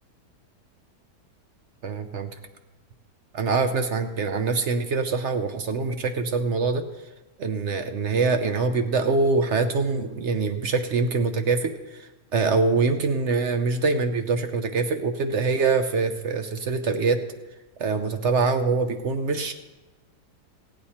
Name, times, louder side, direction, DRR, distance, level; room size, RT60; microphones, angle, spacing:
voice 1, 1.8-2.3 3.3-6.8 7.4-17.2 17.8-19.5, right 4 dB, 55° right, 7 dB, 0.9 m, -24 dB
17.0 x 8.8 x 4.3 m, 1.1 s
omnidirectional pair, 1.8 m